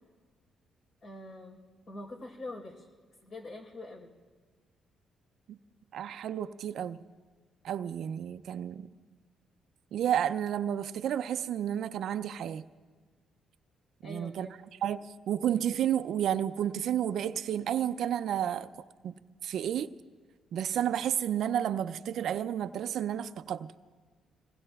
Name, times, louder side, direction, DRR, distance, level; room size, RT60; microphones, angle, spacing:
voice 1, 1.0-1.6 1.9-2.9 3.2-4.1 14.0-14.5, left 1 dB, 55° left, 4.4 m, -44 dB
voice 2, 5.9-7.0 7.6-8.9 9.9-12.6 14.0-14.5 14.8-18.7 19.0-19.9 20.5-23.7, right 10 dB, 70° right, 0.4 m, -31 dB
26.5 x 19.5 x 2.4 m
cardioid pair, 90°, 0 cm